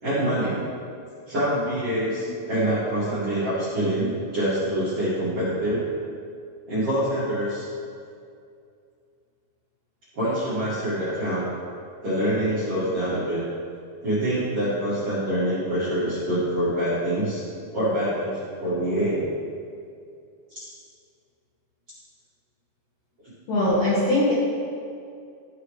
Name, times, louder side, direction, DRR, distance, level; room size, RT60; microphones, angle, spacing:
voice 1, 0.0-0.6 1.3-5.8 6.7-7.7 10.1-11.4 12.0-13.4 14.0-17.4 17.7-19.2 20.5-20.6, right 1 dB, 45° right, -12 dB, 2.0 m, -25 dB
voice 2, 23.5-24.3, left 1 dB, 60° left, -9 dB, 2.3 m, -21 dB
13.5 x 4.9 x 3.3 m, 2.4 s
omnidirectional pair, 5.5 m